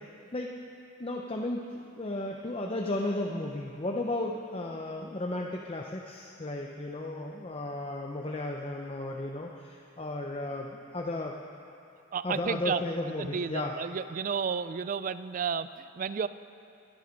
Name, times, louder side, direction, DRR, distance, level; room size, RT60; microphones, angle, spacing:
voice 1, 1.0-11.4 12.2-13.7, left 2 dB, 30° left, 0 dB, 0.7 m, -34 dB
voice 2, 12.1-16.3, right 6 dB, 40° right, 14 dB, 0.4 m, -32 dB
22.5 x 9.9 x 5.2 m, 2.7 s
head